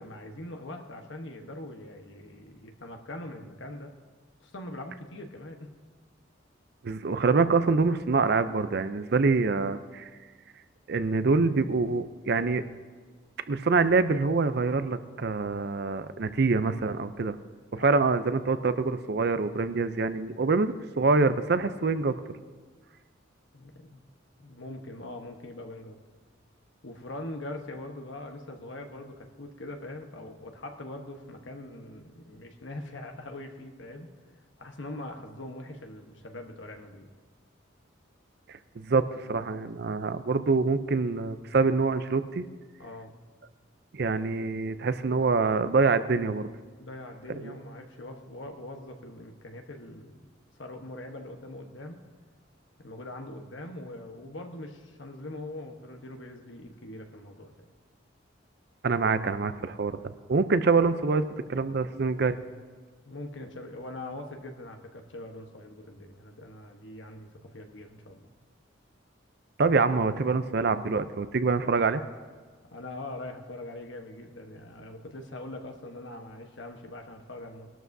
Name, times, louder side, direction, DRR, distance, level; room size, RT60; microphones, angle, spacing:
voice 1, 0.0-3.9 4.4-5.7 17.8-18.0 23.5-24.0 24.4-26.0 26.8-34.1 34.6-37.1 42.8-43.2 46.8-50.3 50.6-52.0 52.8-57.5 63.0-68.3 72.7-77.7, left 1 dB, 70° left, 4 dB, 1.2 m, -42 dB
voice 2, 6.8-10.1 10.9-12.6 13.5-17.4 17.7-22.1 38.5-42.4 43.9-46.5 47.3-47.5 58.8-62.4 69.6-72.0, right 4 dB, 55° right, 12 dB, 0.5 m, -25 dB
20.5 x 12.5 x 2.7 m, 1.5 s
head